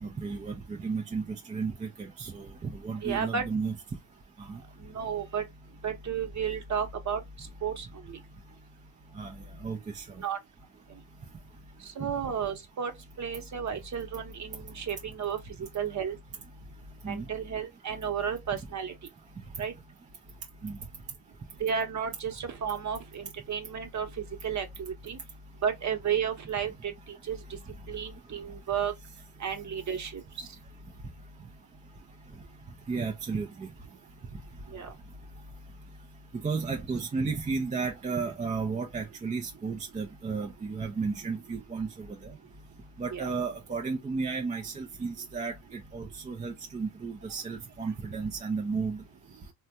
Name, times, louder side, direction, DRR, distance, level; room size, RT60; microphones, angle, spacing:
voice 1, 0.0-3.8 4.4-4.6 9.2-9.3 9.6-10.0 17.0-17.2 18.5-18.6 20.6-20.8 32.9-33.7 36.4-42.3 43.0-49.0, right 4 dB, 15° right, 0.4 m, -33 dB
voice 2, 3.0-3.5 4.9-5.4 5.8-7.2 7.6-8.2 10.2-10.4 11.8-12.9 13.2-15.4 15.7-16.2 17.1-18.9 19.6-19.7 21.6-24.1 24.4-25.2 25.6-27.4 27.9-28.9 29.4-30.2 34.7-34.9 43.1-43.2, right 7 dB, 35° right, 0.9 m, -32 dB
3.3 x 2.2 x 2.6 m
cardioid pair, 115°, 48 cm